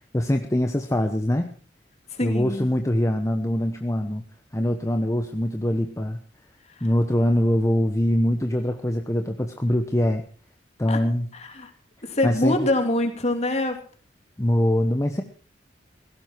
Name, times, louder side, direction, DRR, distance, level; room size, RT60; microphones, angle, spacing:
voice 1, 0.1-1.6 2.2-4.3 4.5-6.2 6.8-10.2 10.8-11.3 12.2-12.6 14.4-15.2, left 1 dB, 15° left, 5 dB, 1.0 m, -23 dB
voice 2, 2.2-2.7 10.9-11.0 11.6-11.7 12.0-13.8, left 1 dB, 40° left, 5 dB, 3.1 m, -24 dB
17.5 x 16.0 x 4.6 m, 0.42 s
head